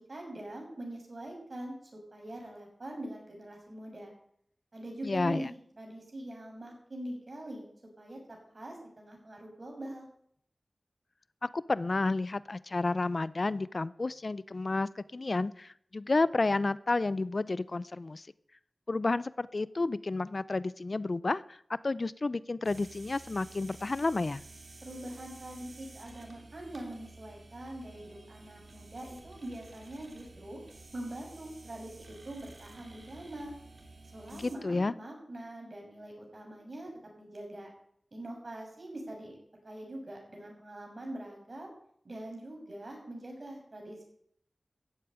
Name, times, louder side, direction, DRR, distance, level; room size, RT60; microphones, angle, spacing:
voice 1, 0.1-4.1 4.7-7.7 8.0-8.2 8.5-10.1 24.8-30.6 30.9-33.5 34.1-37.7 38.1-39.4 39.6-41.7 42.0-44.0, right 1 dB, 55° right, 0 dB, 6.6 m, -43 dB
voice 2, 5.0-5.4 11.4-18.3 18.9-21.6 21.8-24.4 34.3-34.9, left 3 dB, 55° left, 18 dB, 0.5 m, -31 dB
sound 1, 22.6-34.6, right 3 dB, 80° right, 3.2 m, -52 dB
15.0 x 8.5 x 8.9 m, 0.66 s
wide cardioid pair, 65°, 0 cm